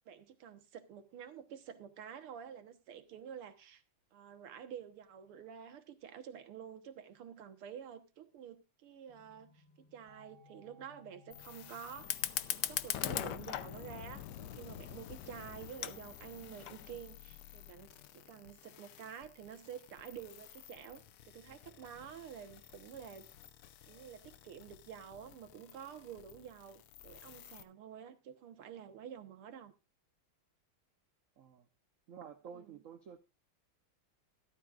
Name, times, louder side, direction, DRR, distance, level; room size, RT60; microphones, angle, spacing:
voice 1, 0.1-3.8 4.1-12.2 12.5-23.3 23.9-29.7 32.5-32.8, right 8 dB, 80° right, 9 dB, 2.1 m, -49 dB
sound 1, 9.1-21.7, left 6 dB, 25° left, 3.2 m, -65 dB
sound 2, 11.3-27.6, left 11 dB, 85° left, 1.8 m, -56 dB
Fire, 12.0-17.0, left 11 dB, 65° left, 1.1 m, -40 dB
voice 2, 32.1-33.2, right 7 dB, 55° right, 8 dB, 1.0 m, -50 dB
14.5 x 13.0 x 2.4 m, 0.27 s
omnidirectional pair, 2.4 m